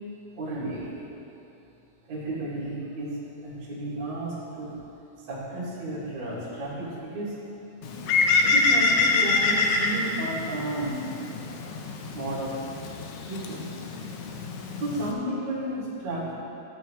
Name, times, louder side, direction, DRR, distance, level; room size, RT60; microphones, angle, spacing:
voice 1, 0.4-0.9 2.1-4.7 5.2-7.3 8.4-11.0 12.1-12.5 13.3-13.7 14.8-16.3, right 1 dB, 45° right, -9 dB, 3.2 m, -32 dB
Bird, 7.8-15.1, left 3 dB, 80° left, 1.8 m, -26 dB
14.5 x 8.7 x 3.1 m, 2.8 s
omnidirectional pair, 4.2 m